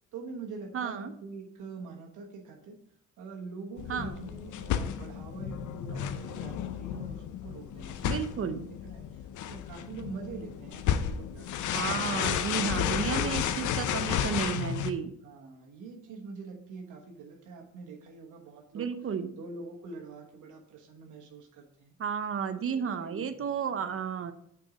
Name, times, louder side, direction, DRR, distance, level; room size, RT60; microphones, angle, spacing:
voice 1, 0.1-2.8 3.2-11.7 12.3-13.3 15.2-18.9 19.3-21.9 22.5-23.4, right 4 dB, 80° right, 1 dB, 1.3 m, -45 dB
voice 2, 0.7-1.1 3.9-4.3 8.0-8.6 11.7-15.1 18.7-19.3 22.0-24.3, right 7 dB, 45° right, 10 dB, 0.6 m, -32 dB
sound 1, 3.8-14.9, left 9 dB, 75° left, 0.6 m, -32 dB
6.0 x 4.6 x 4.9 m, 0.70 s
cardioid pair, 90°, 30 cm